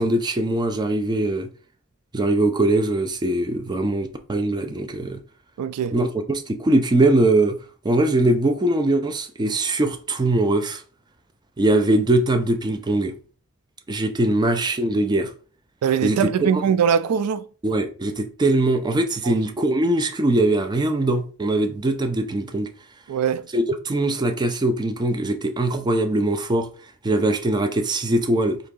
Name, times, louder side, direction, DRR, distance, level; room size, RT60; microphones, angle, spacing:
voice 1, 0.0-1.5 2.1-5.2 5.9-7.6 7.8-10.8 11.6-13.1 13.9-15.3 16.0-16.2 16.5-16.6 17.6-22.7 23.5-26.7 27.0-28.6, right 2 dB, 20° right, 0.4 m, -21 dB
voice 2, 5.6-6.0 15.8-17.5 19.2-19.4 23.1-23.5, right 7 dB, 85° right, 0.3 m, -22 dB
3.9 x 2.8 x 3.7 m
head